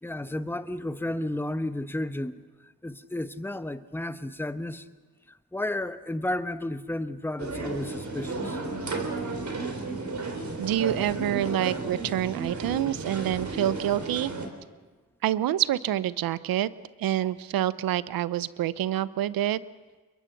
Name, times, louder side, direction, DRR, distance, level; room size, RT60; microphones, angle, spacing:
voice 1, 0.0-4.9 5.3-8.6, left 1 dB, 5° left, 11 dB, 1.0 m, -33 dB
sound 1, 7.4-14.5, right 3 dB, 55° right, 3.4 m, -33 dB
voice 2, 10.6-14.3 15.2-16.7 17.0-19.6, right 12 dB, 85° right, 17 dB, 0.6 m, -27 dB
23.0 x 22.5 x 5.9 m, 1.3 s
supercardioid pair, 45°, 34 cm